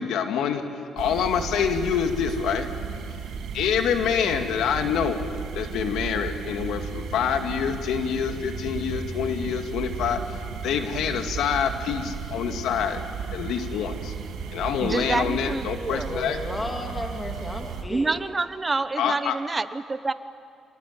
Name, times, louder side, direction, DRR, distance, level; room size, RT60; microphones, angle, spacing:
voice 1, 0.0-2.7 3.5-5.2 5.5-10.3 10.6-13.1 13.3-14.1 14.5-16.4 19.0-19.4, left 7 dB, 80° left, 6 dB, 2.2 m, -26 dB
sound 1, 1.0-17.8, right 6 dB, 80° right, 2.9 m, -35 dB
voice 2, 14.8-16.1 17.9-20.1, right 3 dB, 25° right, 12 dB, 1.1 m, -27 dB
voice 3, 16.1-18.2, left 2 dB, 20° left, 2 dB, 3.0 m, -33 dB
26.0 x 21.5 x 9.3 m, 2.4 s
cardioid pair, 90°, 0 cm